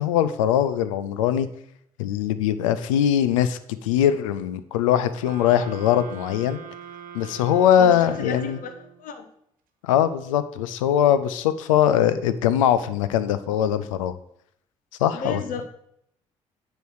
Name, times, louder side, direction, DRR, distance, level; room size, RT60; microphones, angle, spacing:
voice 1, 0.0-1.5 2.0-6.6 7.1-8.6 9.8-14.1 15.0-15.4, left 10 dB, 80° left, 13 dB, 0.4 m, -21 dB
sound 1, 5.2-9.1, right 7 dB, 60° right, 1.1 m, -42 dB
voice 2, 7.8-9.2 15.1-15.7, left 4 dB, 55° left, 8 dB, 0.8 m, -34 dB
9.2 x 3.2 x 6.1 m, 0.71 s
hypercardioid pair, 45°, 17 cm